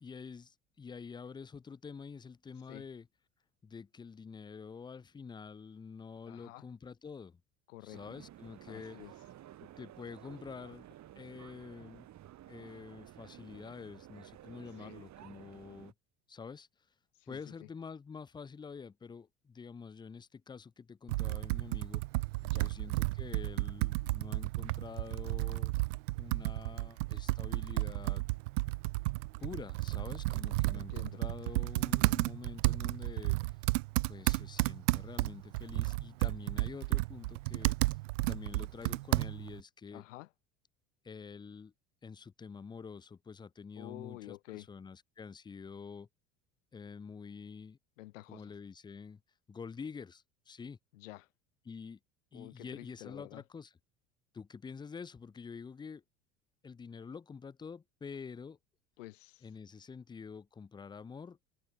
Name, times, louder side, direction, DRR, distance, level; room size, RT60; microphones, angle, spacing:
voice 1, 0.0-3.1 3.6-7.4 7.8-9.0 9.6-10.9 11.1-12.1 12.5-15.9 16.3-16.7 17.3-22.0 22.6-25.7 26.1-28.2 29.4-33.4 34.1-38.0 38.3-40.1 41.0-41.7 42.0-46.1 46.7-47.8 48.3-49.2 49.5-50.8 51.6-52.0 52.3-53.7 54.3-56.0 56.6-58.6 59.4-61.4, left 5 dB, 15° left, 0.4 m, -47 dB
voice 2, 6.3-6.6 7.7-8.0 8.7-9.1 14.8-14.9 17.2-17.4 22.4-22.7 30.7-31.2 39.9-40.3 43.8-44.7 48.0-48.4 50.9-51.3 52.3-53.4 59.0-59.4, left 18 dB, 80° left, 1.4 m, -49 dB
sound 1, 7.9-15.9, right 13 dB, 50° right, 2.8 m, -53 dB
Computer keyboard, 21.1-39.6, right 23 dB, 80° right, 0.5 m, -33 dB
hypercardioid pair, 80°, 37 cm